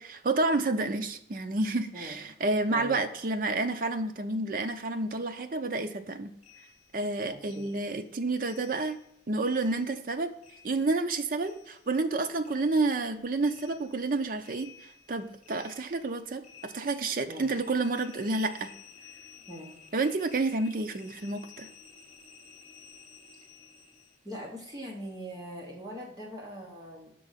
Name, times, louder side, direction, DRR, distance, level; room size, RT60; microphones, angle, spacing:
voice 1, 0.0-6.3 6.9-9.0 9.3-10.3 10.6-18.7 19.9-21.7, right 3 dB, 50° right, 7 dB, 0.5 m, -30 dB
voice 2, 2.7-3.0 7.3-7.6 17.3-17.5 19.5-19.7 24.2-27.1, equal, 20° right, -2 dB, 1.1 m, -41 dB
sound 1, 6.4-9.1 9.4-12.2 12.4-24.2, left 6 dB, 40° left, 0.9 m, -54 dB
6.1 x 3.8 x 5.6 m, 0.76 s
head